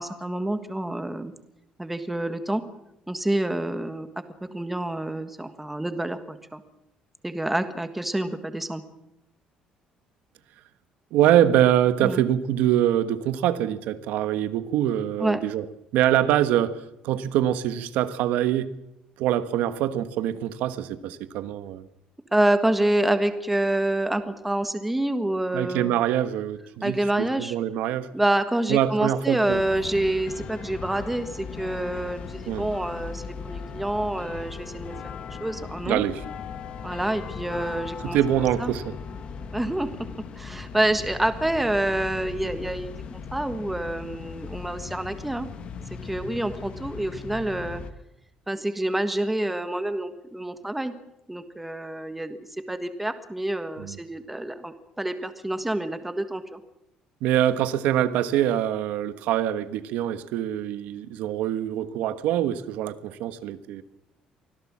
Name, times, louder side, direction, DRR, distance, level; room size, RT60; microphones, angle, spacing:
voice 1, 0.0-1.3 1.8-2.6 3.1-4.1 4.5-6.6 7.2-8.8 12.0-12.2 15.2-15.4 22.3-26.0 26.8-27.5 28.1-34.9 35.4-36.0 36.8-38.2 38.6-38.7 39.5-39.9 40.4-45.5 46.0-47.8 48.5-50.9 51.3-52.4 52.7-56.6, right 1 dB, 5° right, 1.5 m, -27 dB
voice 2, 11.1-15.6 15.9-18.7 19.2-21.9 25.5-28.1 28.7-29.6 32.5-32.7 35.9-36.2 38.0-38.9 53.8-54.0 57.2-63.8, right 11 dB, 85° right, 1.4 m, -24 dB
sound 1, 29.5-47.9, left 6 dB, 45° left, 1.5 m, -38 dB
24.5 x 17.0 x 7.4 m
cardioid pair, 165°, 3 cm